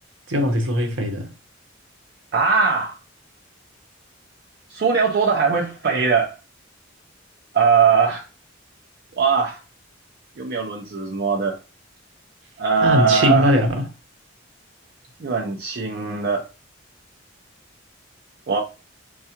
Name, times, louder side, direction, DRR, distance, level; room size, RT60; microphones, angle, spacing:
voice 1, 0.3-1.3 12.8-13.8, equal, 75° right, 0.9 m, -20 dB
voice 2, 2.3-3.0 4.7-6.3 7.5-8.3 9.2-9.6 10.4-11.6 12.6-13.5 15.2-16.5 18.5-18.6, right 5 dB, 55° right, 0.5 m, -20 dB
4.5 x 2.3 x 2.8 m
head